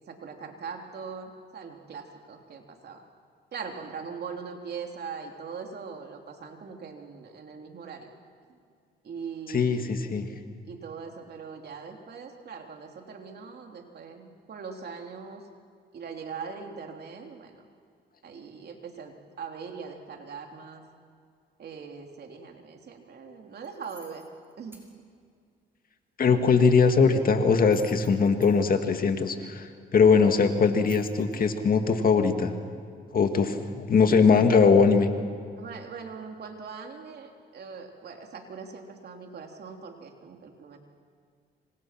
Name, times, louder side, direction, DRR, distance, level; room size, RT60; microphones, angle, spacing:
voice 1, 0.1-3.0 3.5-8.1 8.5-8.6 9.0-10.0 10.7-15.4 15.9-17.6 18.2-20.8 21.6-24.3 24.6-24.9 35.6-40.8, right 5 dB, 60° right, 3 dB, 3.3 m, -41 dB
voice 2, 9.5-10.3 26.2-32.5 33.1-35.1, left 5 dB, 50° left, 6 dB, 2.1 m, -21 dB
sound 1, 23.6-24.9 27.5-28.6 30.7-31.4, right 4 dB, 10° right, 5.9 m, -52 dB
26.5 x 26.0 x 6.0 m, 2.2 s
cardioid pair, 80°, 19 cm